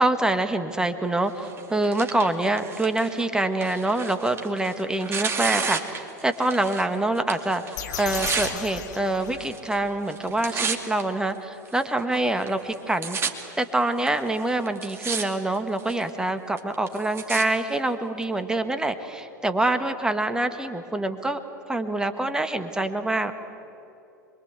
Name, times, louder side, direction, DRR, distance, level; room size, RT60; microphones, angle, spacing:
voice 1, 0.0-13.3 13.6-21.4 21.7-23.3, right 2 dB, 5° right, 8 dB, 1.6 m, -25 dB
Tearing, 1.4-6.9 7.2-8.5 9.3-9.8 10.1-11.0 11.7-11.8 12.5-12.6 12.7-13.3 14.1-14.2 14.7-15.2 15.5-16.0 16.6-17.4 18.2-18.3, right 5 dB, 25° right, 2.4 m, -31 dB
sound 1, 7.7-9.9, left 7 dB, 65° left, 2.1 m, -35 dB
26.5 x 23.0 x 8.2 m, 2.9 s
figure-of-eight pair, 90°, 10 cm